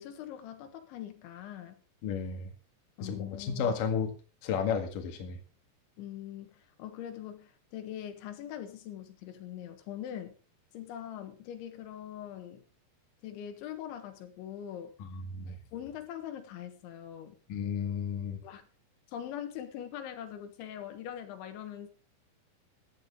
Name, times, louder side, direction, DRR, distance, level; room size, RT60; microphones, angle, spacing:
voice 1, 0.0-1.8 3.0-3.8 6.0-10.4 10.7-12.7 13.2-14.9 15.7-17.4 18.4-18.7 19.1-21.9, left 10 dB, 85° left, 3.8 m, -42 dB
voice 2, 2.0-2.5 3.0-4.1 4.4-5.4 15.0-15.6 17.5-18.4, left 6 dB, 55° left, 3.1 m, -33 dB
15.0 x 11.0 x 3.8 m
omnidirectional pair, 5.2 m